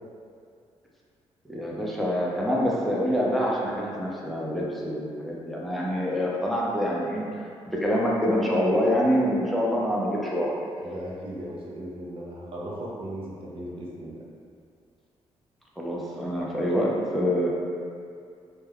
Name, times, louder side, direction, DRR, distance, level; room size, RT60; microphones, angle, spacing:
voice 1, 1.4-10.5 15.8-17.5, equal, ahead, -5 dB, 0.6 m, -26 dB
voice 2, 10.8-14.2, right 1 dB, 55° right, -5 dB, 0.7 m, -37 dB
2.2 x 2.2 x 3.3 m, 2.3 s
cardioid pair, 75°, 11 cm